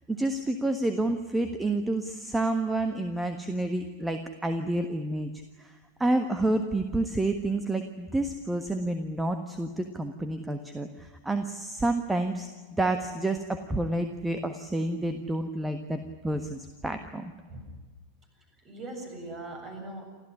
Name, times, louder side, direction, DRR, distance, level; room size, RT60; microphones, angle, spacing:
voice 1, 0.1-5.3 5.6-12.5 12.8-17.3, right 2 dB, 10° right, 8 dB, 1.5 m, -29 dB
voice 2, 17.5-17.9 18.6-20.0, right 2 dB, 30° right, 4 dB, 7.2 m, -40 dB
29.0 x 14.0 x 9.9 m, 1.4 s
figure-of-eight pair, 90°, 0 cm